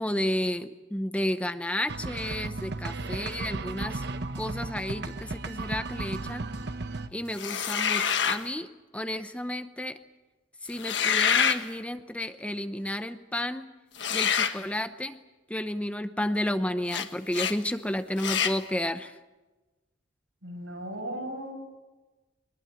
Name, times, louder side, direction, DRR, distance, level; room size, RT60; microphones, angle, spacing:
voice 1, 0.0-4.0 4.3-6.5 7.1-8.7 8.9-10.0 10.6-13.7 14.1-15.2 15.5-19.1, left 1 dB, 5° left, 9 dB, 0.7 m, -32 dB
sound 1, 1.9-7.1, right 2 dB, 55° right, 1.1 m, -35 dB
sound 2, 7.4-8.4 10.7-11.6 14.0-14.6 16.9-17.1 17.3-17.6 18.2-18.6, left 7 dB, 65° left, 1.5 m, -26 dB
voice 2, 20.4-21.5, right 1 dB, 80° right, 2 dB, 6.7 m, -36 dB
23.0 x 21.0 x 8.9 m, 1.2 s
head